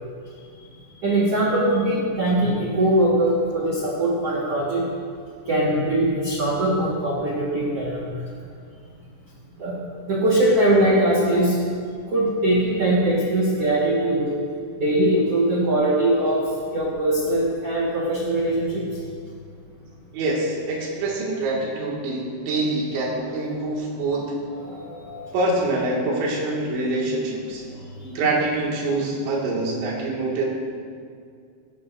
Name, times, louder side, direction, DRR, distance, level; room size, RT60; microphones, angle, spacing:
voice 1, 1.0-4.8 5.4-8.0 9.6-9.8 10.0-11.6 12.1-14.3 14.8-18.8 24.5-25.3, right 1 dB, 65° right, -5 dB, 1.5 m, -21 dB
voice 2, 20.1-24.3 25.3-27.7 28.0-30.5, right 2 dB, 85° right, -3 dB, 4.4 m, -25 dB
17.0 x 12.5 x 2.6 m, 2.3 s
omnidirectional pair, 5.2 m